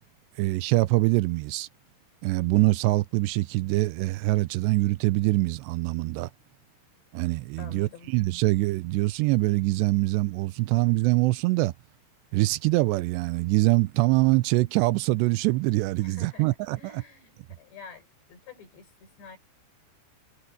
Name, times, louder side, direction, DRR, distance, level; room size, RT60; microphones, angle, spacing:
voice 1, 0.4-1.7 2.2-6.3 7.1-11.7 12.3-16.9, right 21 dB, 85° right, 2.7 m, -24 dB
voice 2, 7.6-8.1 16.0-19.4, left 5 dB, 75° left, 7.4 m, -48 dB
omnidirectional pair, 5.0 m